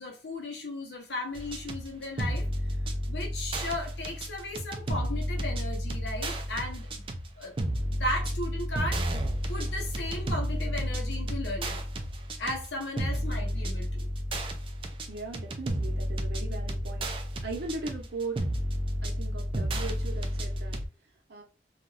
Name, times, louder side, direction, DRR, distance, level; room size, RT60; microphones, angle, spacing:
voice 1, 0.0-2.5 3.1-7.0 7.4-7.5 7.9-9.0 9.5-11.8 12.4-14.0, left 1 dB, 80° left, 0.8 m, -36 dB
sound 1, 1.3-20.9, equal, 30° right, 0.4 m, -32 dB
voice 2, 15.1-17.1 17.4-18.5 19.0-20.8 21.3-21.4, right 3 dB, 60° right, 0.8 m, -38 dB
2.5 x 2.3 x 3.1 m
head